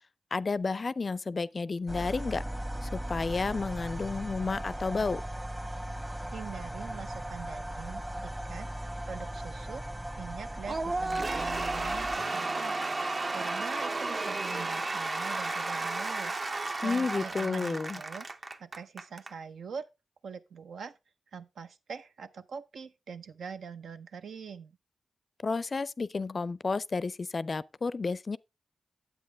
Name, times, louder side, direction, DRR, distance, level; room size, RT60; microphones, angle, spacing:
voice 1, 0.3-2.4 2.8-5.2 16.8-18.0 25.4-28.4, left 4 dB, 45° left, 0.4 m, -31 dB
sound 1, 1.9-12.2, right 1 dB, 20° right, 0.9 m, -38 dB
voice 2, 6.3-9.8 10.2-18.3 18.6-19.9 20.2-21.0 21.3-24.7, right 6 dB, 85° right, 0.7 m, -43 dB
Cheering / Applause / Crowd, 10.7-19.3, right 3 dB, 45° right, 0.7 m, -33 dB
sound 2, 12.2-16.2, right 3 dB, 65° right, 1.9 m, -53 dB
9.7 x 8.1 x 3.4 m
cardioid pair, 70°, 0 cm